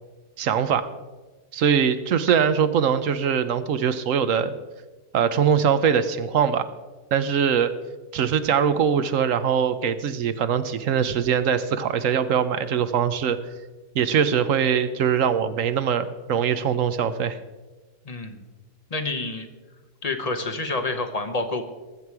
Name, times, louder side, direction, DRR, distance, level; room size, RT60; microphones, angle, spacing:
voice 1, 0.4-0.9 1.5-4.5 5.1-6.7 7.1-7.7 8.1-13.4 13.9-17.4, right 7 dB, 65° right, 12 dB, 1.0 m, -22 dB
voice 2, 18.1-18.4 18.9-19.5 20.0-21.6, left 3 dB, 30° left, 6 dB, 0.9 m, -28 dB
19.5 x 7.3 x 4.7 m, 1.2 s
omnidirectional pair, 1.7 m